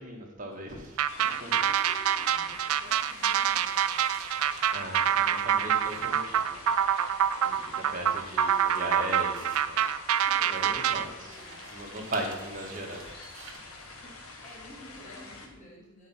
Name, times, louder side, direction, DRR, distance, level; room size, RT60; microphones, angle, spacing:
voice 1, 0.0-1.6 4.7-6.6 7.6-9.8 10.5-11.4 11.7-13.3, right 1 dB, 35° right, 1 dB, 1.5 m, -38 dB
sound 1, 0.7-15.2, right 5 dB, 55° right, 1.4 m, -52 dB
sound 2, 1.0-11.1, right 9 dB, 80° right, 0.4 m, -26 dB
sound 3, 1.1-15.5, left 3 dB, 80° left, 1.5 m, -46 dB
voice 2, 1.1-4.0 7.4-8.0 10.2-11.7 13.7-16.1, left 1 dB, 35° left, -5 dB, 2.1 m, -52 dB
11.0 x 4.8 x 5.8 m, 1.0 s
head